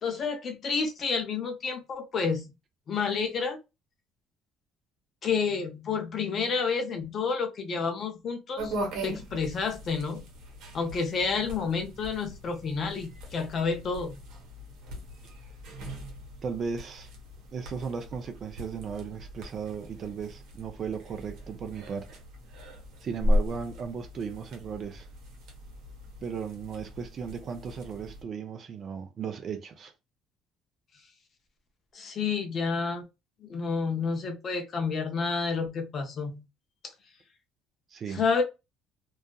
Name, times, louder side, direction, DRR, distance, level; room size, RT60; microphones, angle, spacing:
voice 1, 0.0-2.5 2.9-3.6 5.2-8.7 9.0-10.2 10.7-14.2 31.9-33.0 33.4-36.4 38.1-38.4, left 5 dB, 35° left, 0.5 m, -30 dB
sound 1, 8.6-28.2, left 1 dB, 70° right, 0.9 m, -37 dB
voice 2, 16.4-17.1 17.5-22.1 23.0-25.1 26.2-29.9 37.9-38.2, right 6 dB, 35° right, 0.3 m, -36 dB
2.7 x 2.3 x 2.2 m
cardioid pair, 180°, 0 cm